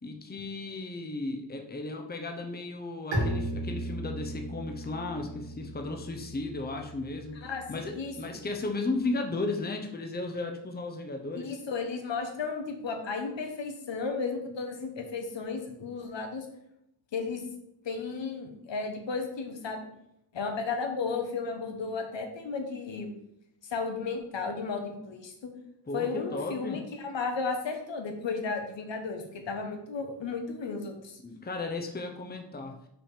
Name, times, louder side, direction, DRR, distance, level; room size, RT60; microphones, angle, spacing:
voice 1, 0.0-11.5 25.9-26.8 31.2-32.8, left 2 dB, 20° left, 4 dB, 0.8 m, -35 dB
Bowed string instrument, 3.1-8.7, right 1 dB, 80° right, 2.5 m, -36 dB
voice 2, 7.3-7.6 7.9-8.1 11.3-16.5 17.1-17.4 17.8-19.8 20.3-23.1 23.7-25.5 25.9-31.2, left 4 dB, 85° left, 4 dB, 1.3 m, -34 dB
6.1 x 4.9 x 4.8 m, 0.79 s
wide cardioid pair, 135°, 43 cm